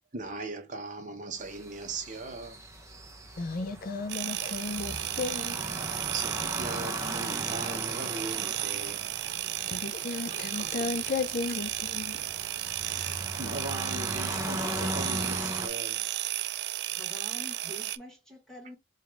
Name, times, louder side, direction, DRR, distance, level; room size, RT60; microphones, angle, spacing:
voice 1, 0.0-2.6 6.1-9.1 10.3-10.9 12.1-12.3 12.8-16.1, right 3 dB, 40° right, 0.9 m, -39 dB
sound 1, 1.4-15.7, right 1 dB, 15° right, 0.7 m, -38 dB
voice 2, 3.4-5.6 9.7-12.2, left 3 dB, 45° left, 0.4 m, -34 dB
sound 2, 4.1-18.0, right 14 dB, 65° right, 0.4 m, -34 dB
voice 3, 16.9-18.8, equal, 5° left, 1.5 m, -46 dB
5.0 x 2.4 x 3.3 m
head